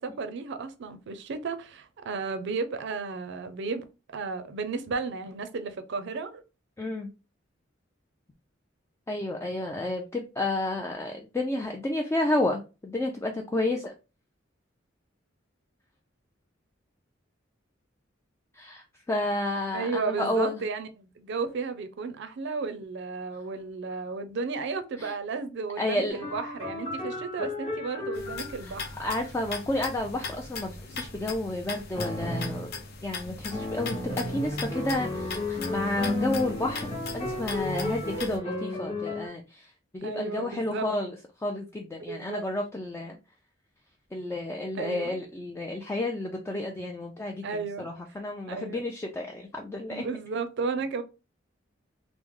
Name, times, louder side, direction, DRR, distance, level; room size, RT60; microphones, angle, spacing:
voice 1, 0.0-6.4 19.7-28.9 40.0-40.8 42.1-42.5 44.7-45.2 47.4-47.9 48.5-48.8 49.9-51.0, right 4 dB, 65° right, 0.5 m, -33 dB
voice 2, 6.8-7.1 9.1-13.9 18.5-20.6 25.0-25.1 25.8-26.1 28.6-32.7 33.0-43.2 44.1-50.1, left 2 dB, 15° left, 0.3 m, -31 dB
sound 1, 26.1-29.2 32.0-32.8 33.5-39.3, left 1 dB, 30° left, 1.0 m, -33 dB
sound 2, 28.1-38.4, left 4 dB, 55° left, 0.6 m, -39 dB
3.0 x 2.0 x 3.5 m
head